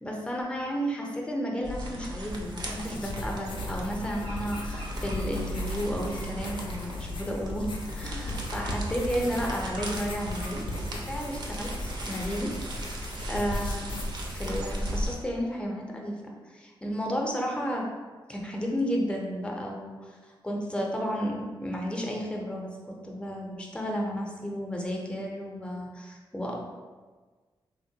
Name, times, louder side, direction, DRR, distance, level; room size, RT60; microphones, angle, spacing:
voice 1, 0.0-13.9 14.2-17.8 18.3-22.7 23.0-26.5, equal, 10° left, -1 dB, 0.5 m, -33 dB
sound 1, 1.6-15.1, equal, 50° right, 0.5 m, -36 dB
sound 2, 2.3-15.0, left 1 dB, 60° left, 0.5 m, -38 dB
sound 3, 4.0-10.6, right 1 dB, 85° right, 0.9 m, -48 dB
3.4 x 2.1 x 2.7 m, 1.4 s
wide cardioid pair, 100°, 9 cm